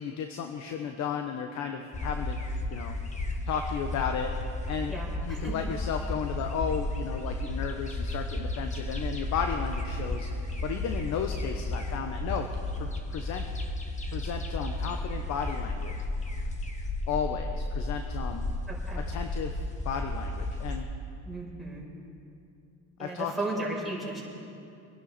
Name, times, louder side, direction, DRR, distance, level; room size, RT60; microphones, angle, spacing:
voice 1, 0.0-2.4 2.7-3.0 3.4-4.4 4.7-4.9 5.3-10.3 10.6-12.5 12.8-13.5 14.1-15.9 17.1-18.5 19.0-20.9 23.0-23.3, left 7 dB, 65° left, 5 dB, 1.0 m, -34 dB
sound 1, 1.9-20.8, left 1 dB, 25° left, 1.6 m, -33 dB
voice 2, 4.9-5.6 18.7-19.0 21.2-21.9 23.0-24.2, right 2 dB, ahead, -5 dB, 4.5 m, -35 dB
24.0 x 11.0 x 4.3 m, 2.6 s
cardioid pair, 115°, 30 cm